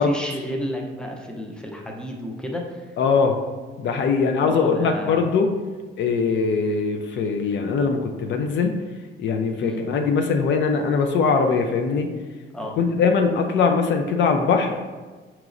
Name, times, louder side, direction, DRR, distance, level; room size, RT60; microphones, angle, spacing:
voice 1, 0.0-2.9 4.4-5.3 9.6-9.8 12.5-12.8, equal, 5° left, 0 dB, 0.6 m, -31 dB
voice 2, 3.0-3.4 3.8-5.5 6.0-8.8 9.2-12.1 12.8-14.7, left 5 dB, 65° left, 5 dB, 0.4 m, -21 dB
4.7 x 3.0 x 2.5 m, 1.4 s
cardioid pair, 90°, 20 cm